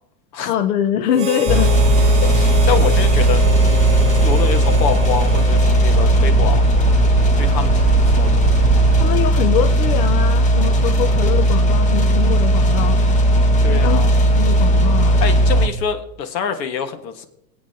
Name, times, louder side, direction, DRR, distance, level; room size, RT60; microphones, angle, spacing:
voice 1, 0.4-1.7 2.0-2.2 9.0-13.0 13.6-14.1 14.3-15.2, left 9 dB, 65° left, 9 dB, 0.8 m, -23 dB
Harmonica, 1.1-6.6, right 2 dB, 15° right, 0.9 m, -30 dB
sound 1, 1.5-15.7, right 1 dB, 15° left, 0.7 m, -15 dB
sound 2, 1.6-9.1, right 11 dB, 55° right, 0.5 m, -24 dB
voice 2, 2.3-3.4 4.1-6.6 7.4-8.6 13.6-14.1 15.2-17.3, left 7 dB, 80° left, 8 dB, 1.6 m, -25 dB
20.5 x 8.6 x 2.8 m, 0.78 s
supercardioid pair, 135°, 50 cm